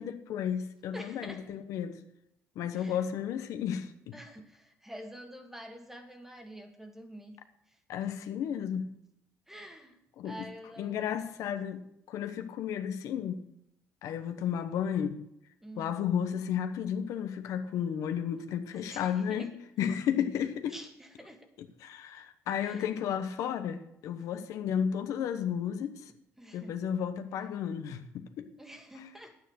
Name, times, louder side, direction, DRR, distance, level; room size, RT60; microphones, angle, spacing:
voice 1, 0.0-2.0 2.6-3.9 7.9-8.9 10.2-10.3 10.8-13.4 14.0-15.2 15.8-20.7 21.8-26.1 26.5-28.5, left 8 dB, 80° left, 1.0 m, -33 dB
voice 2, 0.9-1.5 2.7-3.0 4.1-7.4 7.7-7.8 9.5-11.0 15.6-16.0 18.7-19.6 20.7-21.5 22.6-22.9 24.2-24.3 26.4-26.8 28.6-29.4, equal, 5° right, 1.6 m, -47 dB
10.5 x 9.2 x 6.4 m
cardioid pair, 120°, 5 cm